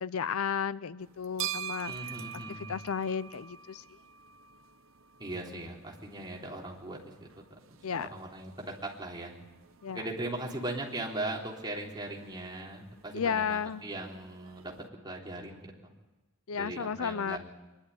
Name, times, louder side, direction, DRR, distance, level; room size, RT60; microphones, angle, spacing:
voice 1, 0.0-1.9 2.3-3.8 7.8-8.1 9.8-10.1 13.1-13.8 16.5-17.4, left 6 dB, 85° left, 17 dB, 0.6 m, -33 dB
sound 1, 1.0-14.9, right 9 dB, 65° right, 0.8 m, -46 dB
voice 2, 1.8-2.8 5.2-7.3 7.9-9.3 9.9-14.7 15.0-15.9 16.5-17.4, right 2 dB, 20° right, -2 dB, 3.5 m, -39 dB
24.5 x 11.5 x 9.7 m, 1.1 s
head